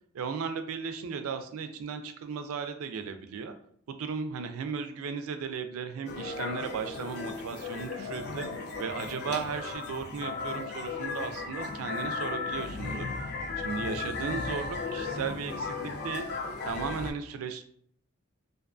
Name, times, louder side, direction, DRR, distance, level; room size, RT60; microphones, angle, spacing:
voice 1, 0.1-3.5 3.9-8.4 8.8-13.3 13.6-16.3 16.6-17.6, right 5 dB, 75° right, 8 dB, 0.3 m, -36 dB
sound 1, 6.1-17.1, left 4 dB, 50° left, 0.4 m, -35 dB
2.5 x 2.3 x 2.4 m, 0.63 s
head